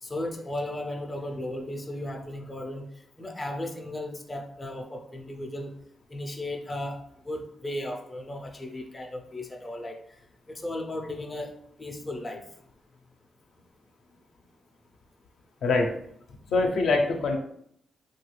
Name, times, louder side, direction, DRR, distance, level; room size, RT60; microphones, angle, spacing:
voice 1, 0.0-2.9 3.2-5.7 6.1-10.0 10.5-12.5, left 1 dB, 20° left, 3 dB, 0.4 m, -35 dB
voice 2, 15.6-15.9 16.5-17.4, left 3 dB, 75° left, 3 dB, 0.5 m, -23 dB
3.0 x 2.3 x 3.1 m, 0.71 s
cardioid pair, 110°, 0 cm